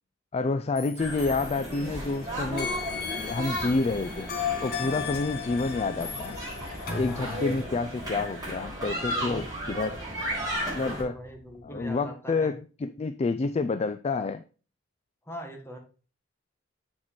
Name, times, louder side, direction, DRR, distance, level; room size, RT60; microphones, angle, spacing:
voice 1, 0.3-4.3 4.6-6.4 6.9-9.4 9.7-10.0 10.7-11.2 11.6-14.4, left 3 dB, 35° left, 11 dB, 0.3 m, -29 dB
sound 1, 0.8-2.1 2.6-7.6, left 6 dB, 55° left, 1.6 m, -36 dB
sound 2, 1.0-11.0, equal, 20° right, 3.9 m, -35 dB
sound 3, 2.0-12.0, right 1 dB, 55° right, 2.4 m, -54 dB
voice 2, 7.0-7.5 9.1-9.5 10.7-12.6 15.2-15.8, equal, 15° left, 2 dB, 1.5 m, -41 dB
7.3 x 4.8 x 4.3 m, 0.37 s
head